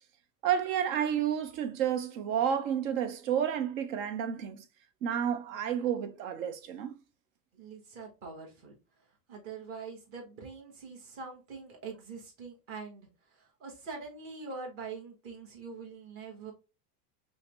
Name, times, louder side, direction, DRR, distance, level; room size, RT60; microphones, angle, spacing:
voice 1, 0.4-4.6 5.0-6.9, right 9 dB, 60° right, 0.8 m, -30 dB
voice 2, 7.5-8.7 9.3-16.5, right 4 dB, 30° right, 1.2 m, -44 dB
5.6 x 2.1 x 3.0 m
supercardioid pair, 180°, 46 cm